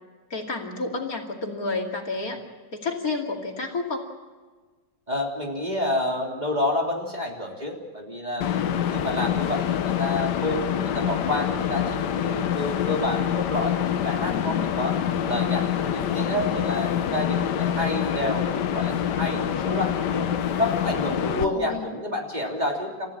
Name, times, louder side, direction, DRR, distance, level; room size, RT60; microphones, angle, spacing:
voice 1, 0.3-2.4 2.7-4.1 14.3-14.7 21.3-21.9, left 3 dB, 50° left, 1 dB, 3.0 m, -30 dB
voice 2, 5.1-15.0 15.3-20.3 20.6-23.1, left 1 dB, 25° right, 0 dB, 3.3 m, -29 dB
sound 1, 8.4-21.5, left 9 dB, 70° left, 1.5 m, -26 dB
29.5 x 15.0 x 7.4 m, 1.4 s
omnidirectional pair, 1.9 m